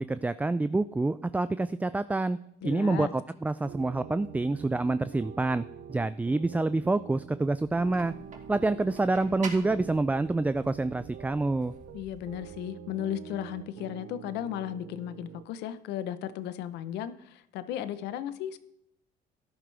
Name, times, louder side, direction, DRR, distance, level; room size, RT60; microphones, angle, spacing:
voice 1, 0.0-2.4 2.6-8.1 8.5-11.7, right 2 dB, 10° right, 14 dB, 0.3 m, -27 dB
voice 2, 2.6-3.1 11.9-18.6, left 11 dB, 85° left, 13 dB, 0.9 m, -35 dB
sound 1, 3.6-15.4, right 9 dB, 70° right, 0.7 m, -46 dB
sound 2, 7.6-12.6, right 4 dB, 45° right, 2.3 m, -47 dB
13.0 x 11.0 x 3.4 m, 0.77 s
cardioid pair, 110°, 17 cm